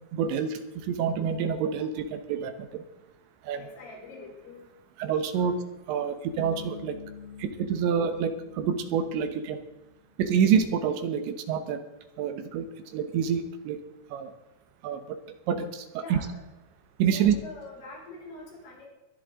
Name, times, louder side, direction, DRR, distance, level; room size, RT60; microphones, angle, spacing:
voice 1, 0.1-2.8 3.4-3.6 5.0-5.5 5.9-7.0 7.4-9.6 10.2-11.8 12.2-12.7 12.9-13.8 14.1-14.3 14.8-15.2 15.5-16.2 17.0-17.3, right 7 dB, 75° right, 9 dB, 3.2 m, -27 dB
voice 2, 3.5-4.6 5.3-5.5 16.0-16.5 17.1-18.9, left 2 dB, 80° left, -3 dB, 7.8 m, -44 dB
Bass guitar, 6.4-10.0, left 6 dB, 50° left, 3.4 m, -46 dB
22.0 x 11.5 x 3.8 m, 1.0 s
omnidirectional pair, 5.7 m